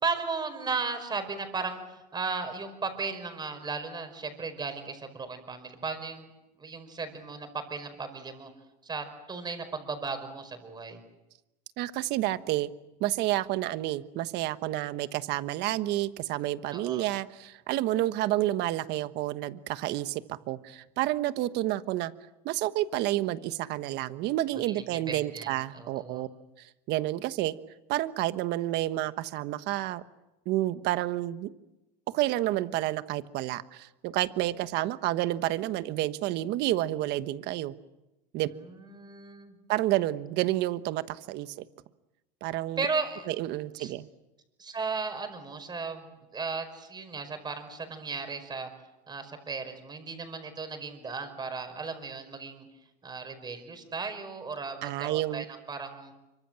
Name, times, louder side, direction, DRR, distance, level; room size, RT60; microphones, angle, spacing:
voice 1, 0.0-6.3 6.6-8.5 8.8-11.0 16.7-17.1 24.7-25.5 25.7-26.2 38.6-39.6 42.8-43.3 43.8-43.9 44.6-48.7 49.1-52.7 53.0-56.1, right 4 dB, 20° right, 8 dB, 5.2 m, -36 dB
voice 2, 11.8-12.7 13.0-22.1 22.4-26.3 26.6-27.5 27.9-30.0 30.4-31.5 32.1-37.7 38.3-38.5 39.7-41.5 42.4-42.8 43.3-44.1 54.8-55.4, right 15 dB, 55° right, 12 dB, 1.3 m, -30 dB
25.5 x 24.5 x 7.6 m, 0.98 s
supercardioid pair, 125°, 21 cm